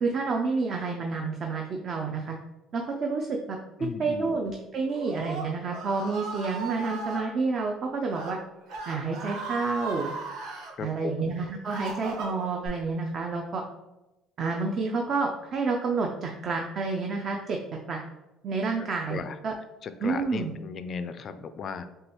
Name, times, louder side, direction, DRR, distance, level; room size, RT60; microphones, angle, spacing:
voice 1, 0.0-2.3 2.7-3.6 4.0-8.4 8.9-10.1 10.8-13.6 14.4-17.6 17.9-18.0 18.4-19.5 20.0-20.5, right 4 dB, 35° right, 1 dB, 0.4 m, -29 dB
voice 2, 3.8-4.3 10.8-11.3 19.1-19.4 19.8-21.8, left 6 dB, 35° left, 11 dB, 0.3 m, -36 dB
Screaming, 4.8-7.2 8.0-8.3 8.7-10.7 11.3-12.7, right 3 dB, 70° right, 0.9 m, -36 dB
6.2 x 2.3 x 2.9 m, 0.99 s
cardioid pair, 155°, 0 cm